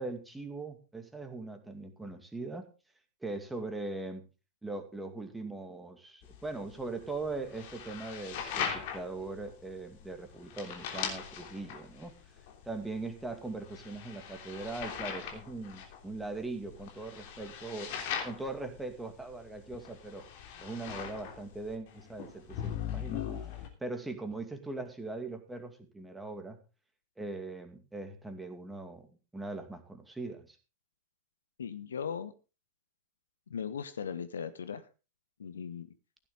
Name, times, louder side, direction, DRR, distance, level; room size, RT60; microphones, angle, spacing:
voice 1, 0.0-2.7 3.2-4.2 4.6-12.1 12.6-17.9 18.2-20.2 20.6-23.3 23.8-26.6 27.2-29.1 29.3-30.6, right 3 dB, 5° right, 7 dB, 2.3 m, -40 dB
sound 1, 6.2-23.7, left 8 dB, 50° left, 3.1 m, -41 dB
voice 2, 31.6-32.3 33.5-34.8 35.4-35.9, left 7 dB, 70° left, 12 dB, 1.0 m, -38 dB
15.5 x 10.5 x 3.8 m, 0.32 s
figure-of-eight pair, 90°, 0 cm